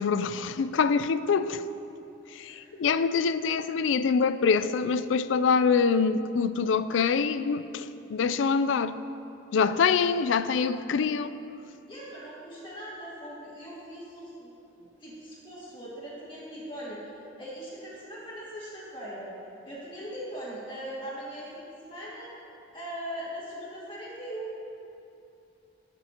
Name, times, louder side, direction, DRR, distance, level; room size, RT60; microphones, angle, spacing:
voice 1, 0.0-1.6 2.3-9.0 9.5-11.4, left 5 dB, 75° left, 0.4 m, -25 dB
voice 2, 9.7-10.1 11.9-14.5 14.8-17.0 17.4-19.3 19.6-22.3 22.7-24.5, right 1 dB, 25° left, 2.0 m, -40 dB
17.5 x 6.8 x 2.9 m
head